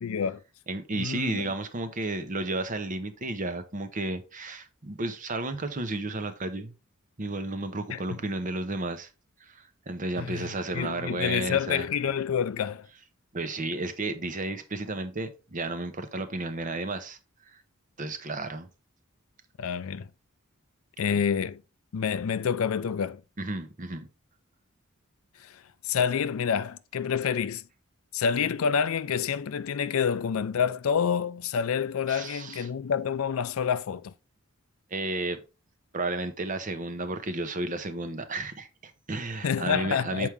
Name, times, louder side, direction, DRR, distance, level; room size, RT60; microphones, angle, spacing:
voice 1, 0.0-0.4 0.9-1.4 7.9-8.0 10.2-10.5 10.7-12.9 19.6-20.1 21.0-21.6 21.9-23.2 25.4-25.5 25.8-27.6 28.1-34.1 39.4-40.3, left 7 dB, 75° left, 0.4 m, -28 dB
voice 2, 0.7-6.7 7.2-9.1 9.4-11.9 13.3-17.2 17.5-17.6 18.0-18.7 23.4-24.1 32.1-32.7 34.9-35.4 35.9-40.3, right 2 dB, 35° right, 0.9 m, -33 dB
7.2 x 4.7 x 3.5 m
head